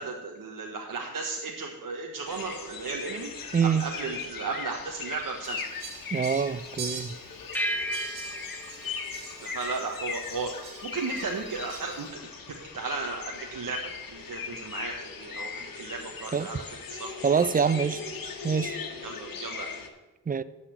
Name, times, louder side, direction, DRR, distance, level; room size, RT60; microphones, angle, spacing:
voice 1, 0.0-5.6 9.4-12.1 12.7-13.8 14.1-17.3 19.0-19.8, right 4 dB, 60° right, 1.2 m, -35 dB
sound 1, 2.3-19.9, left 5 dB, 65° left, 1.3 m, -39 dB
voice 2, 3.5-3.8 6.1-7.1 16.3-16.5 17.2-18.0 18.4-18.8 20.3-20.4, right 6 dB, 25° right, 0.5 m, -25 dB
Fowl, 5.4-12.1, right 4 dB, 85° right, 1.5 m, -44 dB
sound 2, 7.5-10.3, equal, 5° left, 1.1 m, -35 dB
11.0 x 4.2 x 8.0 m
supercardioid pair, 45°, 37 cm